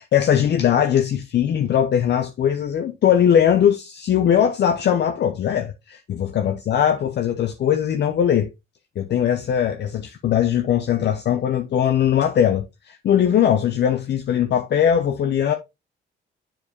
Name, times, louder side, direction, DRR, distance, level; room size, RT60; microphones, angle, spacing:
voice 1, 0.1-8.5 9.0-15.5, left 9 dB, 60° left, 0.7 m, -20 dB
7.4 x 4.6 x 3.0 m
cardioid pair, 90°, 20 cm